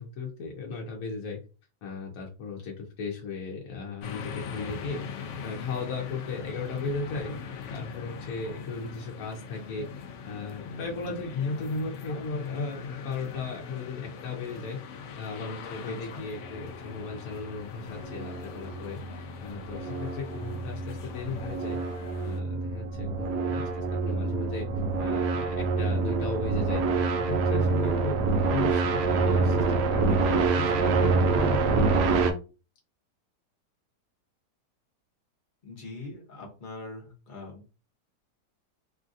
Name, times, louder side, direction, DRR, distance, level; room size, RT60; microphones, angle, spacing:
voice 1, 0.0-1.4 1.8-5.0 5.4-7.4 7.7-9.9 10.2-14.8 15.2-21.8 22.2-24.7 25.0-28.2 28.5-31.9, left 3 dB, 65° left, -1 dB, 1.0 m, -36 dB
sound 1, 4.0-22.4, left 6 dB, 85° left, 0.6 m, -41 dB
voice 2, 15.8-16.2 35.6-37.6, left 3 dB, 40° left, 0 dB, 0.7 m, -42 dB
sound 2, 17.8-32.3, right 4 dB, 75° right, 1.1 m, -26 dB
3.1 x 2.5 x 2.5 m, 0.33 s
omnidirectional pair, 1.8 m